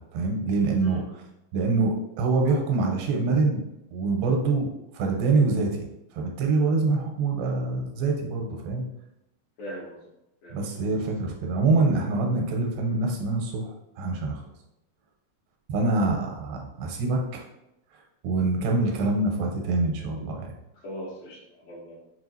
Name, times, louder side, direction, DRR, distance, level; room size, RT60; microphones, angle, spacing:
voice 1, 0.1-1.0 1.5-3.6 3.9-4.7 4.9-5.9 6.1-8.8 10.5-14.4 15.7-17.4 18.2-20.5, right 3 dB, 85° right, 1 dB, 2.4 m, -25 dB
voice 2, 9.6-10.1 10.4-10.7 20.8-22.0, equal, 70° left, -6 dB, 3.0 m, -40 dB
6.0 x 2.6 x 2.8 m, 0.88 s
omnidirectional pair, 4.2 m